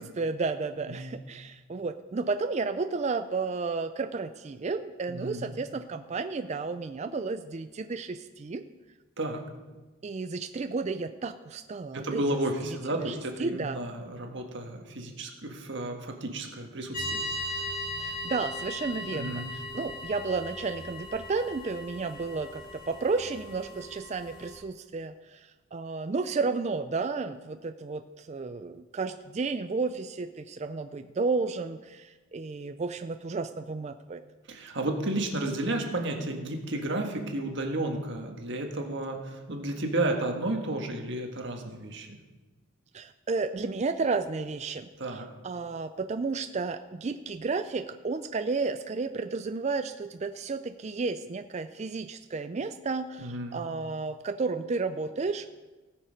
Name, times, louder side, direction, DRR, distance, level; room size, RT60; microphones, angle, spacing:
voice 1, 0.0-8.6 10.0-12.2 13.0-13.8 18.0-34.2 42.9-55.5, right 4 dB, 30° right, 9 dB, 0.3 m, -32 dB
voice 2, 0.8-1.1 5.1-5.5 9.2-9.4 11.9-17.2 19.1-19.5 34.5-42.2 45.0-45.3 53.2-53.6, right 1 dB, 55° right, 3 dB, 1.5 m, -32 dB
sound 1, 16.9-24.6, left 1 dB, 40° left, 1.9 m, -38 dB
18.0 x 6.4 x 5.1 m, 1.2 s
head